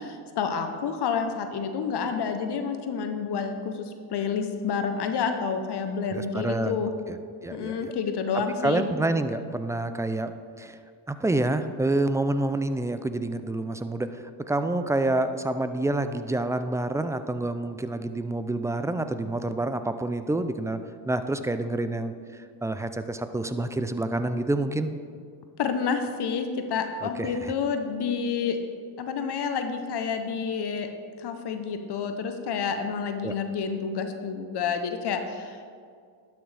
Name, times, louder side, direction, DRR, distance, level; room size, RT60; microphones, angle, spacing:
voice 1, 0.0-6.9 7.5-8.8 25.6-28.6 29.0-30.9 31.2-35.6, left 6 dB, 55° left, 6 dB, 0.9 m, -29 dB
voice 2, 6.1-7.2 7.4-7.9 8.6-10.3 10.6-10.8 11.1-20.8 21.1-22.1 22.6-24.9 27.0-27.5 33.2-33.4, right 2 dB, 5° right, 10 dB, 0.3 m, -28 dB
12.0 x 6.2 x 3.4 m, 2.2 s
supercardioid pair, 65°, 49 cm